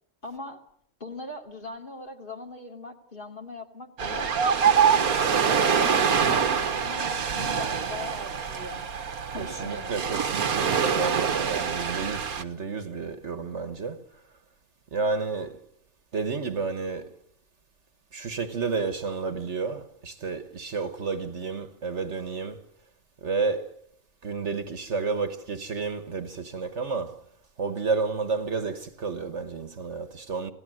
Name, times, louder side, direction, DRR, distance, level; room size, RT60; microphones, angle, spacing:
voice 1, 0.2-0.6 1.0-4.3 4.9-8.8 9.3-10.1, left 1 dB, 35° left, 2.7 m, -40 dB
Ocean, 4.0-12.4, right 7 dB, 90° right, 1.8 m, -25 dB
voice 2, 9.3-14.0 14.9-15.6 16.1-17.1 18.1-22.6 23.2-23.7 24.2-27.2 27.6-30.5, right 4 dB, 55° right, 1.6 m, -31 dB
27.5 x 17.0 x 7.8 m
omnidirectional pair, 1.5 m